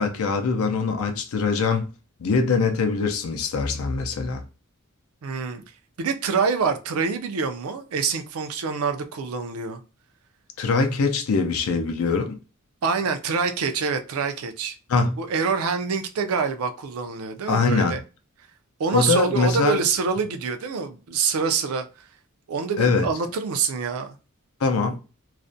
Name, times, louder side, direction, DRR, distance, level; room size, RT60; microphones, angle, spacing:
voice 1, 0.0-1.9 2.2-4.4 10.6-12.4 14.9-15.2 17.5-17.9 18.9-19.8 22.8-23.1 24.6-25.0, left 4 dB, 70° left, 0.5 m, -22 dB
voice 2, 5.2-5.6 6.0-9.8 12.8-14.8 15.2-18.0 18.8-21.8 22.5-24.1, right 5 dB, 75° right, 0.4 m, -26 dB
2.4 x 2.1 x 2.5 m
head